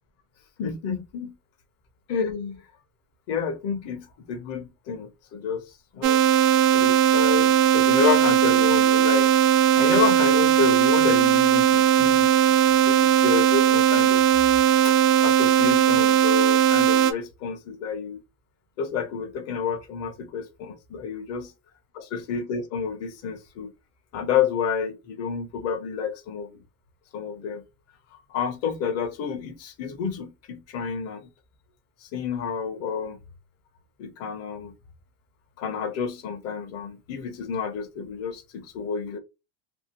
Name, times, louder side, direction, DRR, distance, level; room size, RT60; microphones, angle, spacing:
voice 1, 0.6-1.3 2.1-2.7 3.3-5.6 5.9-6.2 6.7-9.3 9.7-12.3 12.8-14.2 14.8-15.0 15.2-18.2 18.8-21.5 21.9-23.7 24.1-26.5 27.1-27.6 28.1-31.3 32.0-33.2 34.0-34.7 35.6-39.2, left 6 dB, 35° left, 0.6 m, -29 dB
sound 1, 6.0-17.1, right 10 dB, 80° right, 0.7 m, -18 dB
2.8 x 2.5 x 2.7 m
cardioid pair, 170°, 46 cm